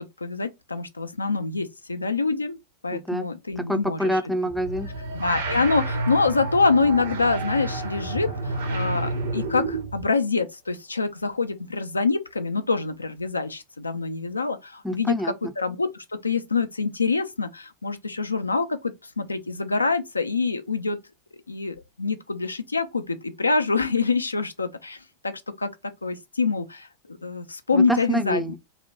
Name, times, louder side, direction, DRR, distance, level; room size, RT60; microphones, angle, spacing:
voice 1, 0.0-2.6 2.8-4.2 5.1-21.0 21.5-25.3 25.6-25.7 26.0-28.5, left 4 dB, 80° left, 0.3 m, -26 dB
voice 2, 2.9-3.3 3.7-4.9 14.8-15.3 27.7-28.6, equal, ahead, 0.4 m, -26 dB
sound 1, 4.5-10.0, right 2 dB, 60° right, 0.7 m, -30 dB
2.7 x 2.1 x 2.5 m
figure-of-eight pair, 90°, 0 cm